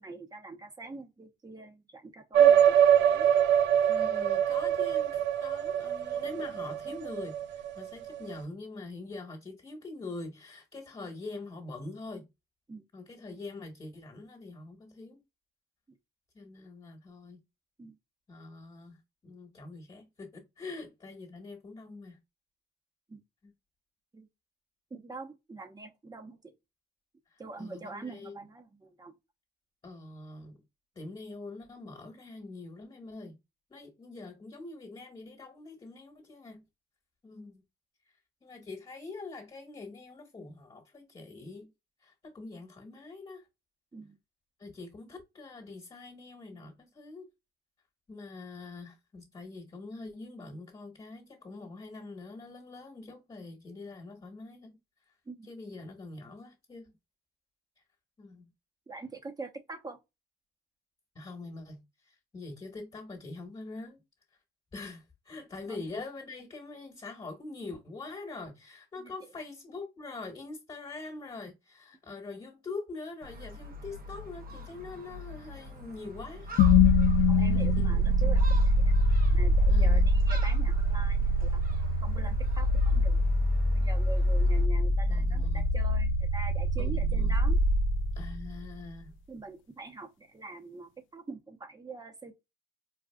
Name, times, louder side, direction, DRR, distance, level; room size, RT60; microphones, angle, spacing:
voice 1, 0.0-3.3 12.7-12.8 15.9-16.0 17.8-18.0 23.1-23.2 24.1-24.3 24.9-26.5 27.4-29.1 43.9-44.2 55.3-55.5 58.9-60.0 65.7-65.8 69.0-69.1 77.3-78.9 79.3-81.6 82.0-83.2 83.7-87.6 89.3-92.3, right 3 dB, 20° right, 0.9 m, -44 dB
sound 1, 2.3-8.3, right 9 dB, 70° right, 0.4 m, -24 dB
voice 2, 3.9-12.3 12.9-15.2 16.3-17.4 18.3-22.2 23.4-23.5 27.3-28.3 29.8-30.6 30.9-33.4 33.7-36.6 37.2-37.6 38.4-41.7 42.0-43.4 44.6-47.3 48.1-54.8 55.5-56.9 58.2-58.5 61.1-64.0 64.7-76.5 77.4-78.3 79.7-80.1 85.0-85.6 86.8-87.4 88.1-89.1, left 3 dB, 25° left, 1.4 m, -44 dB
Gull seagull, 73.2-84.7, right 1 dB, 45° right, 0.8 m, -45 dB
sound 2, 76.6-88.7, left 1 dB, 75° left, 0.4 m, -24 dB
4.9 x 2.4 x 2.3 m
cardioid pair, 90°, 20 cm